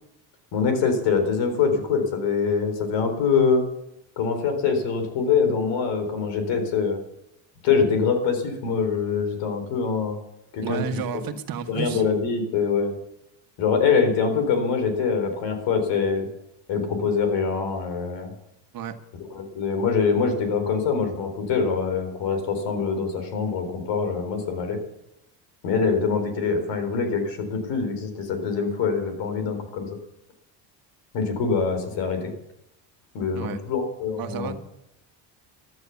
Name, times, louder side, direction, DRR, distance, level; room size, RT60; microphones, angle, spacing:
voice 1, 0.5-3.6 4.2-7.0 7.6-10.2 10.5-10.8 11.7-12.9 13.6-16.3 16.7-18.3 19.3-24.8 25.6-29.9 31.1-32.3 33.1-34.5, left 5 dB, 75° left, 7 dB, 4.1 m, -24 dB
voice 2, 10.6-12.0 18.7-19.0 33.3-33.6 34.2-34.5, right 7 dB, 50° right, 7 dB, 1.6 m, -31 dB
14.0 x 12.0 x 7.1 m, 0.83 s
cardioid pair, 120°, 44 cm